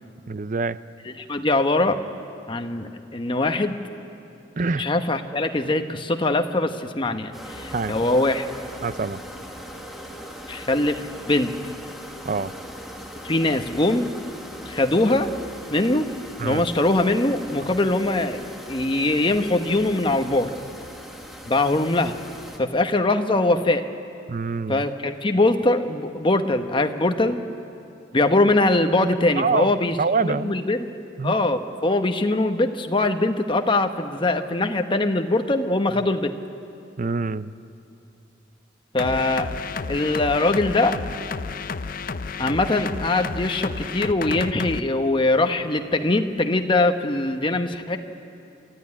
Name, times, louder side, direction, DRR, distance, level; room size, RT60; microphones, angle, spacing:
voice 1, 0.3-0.8 4.6-4.9 7.7-8.0 8.8-9.2 12.2-12.5 16.4-16.6 24.3-24.8 29.4-29.7 30.0-30.6 31.2-31.3 37.0-37.5, right 4 dB, 45° right, 15 dB, 0.5 m, -25 dB
voice 2, 1.2-2.0 2.5-3.8 4.7-8.5 10.5-11.5 13.2-14.1 14.7-15.3 15.7-16.1 16.4-20.5 21.4-22.2 22.6-23.9 24.7-27.4 28.1-30.0 30.2-30.8 31.2-36.3 38.9-39.5 39.9-41.0 42.4-48.0, left 2 dB, 30° left, 6 dB, 1.0 m, -22 dB
sound 1, 7.3-22.6, equal, ahead, 1.9 m, -39 dB
sound 2, 39.0-44.8, left 4 dB, 50° left, 0.6 m, -31 dB
26.5 x 14.0 x 9.9 m, 2.6 s
head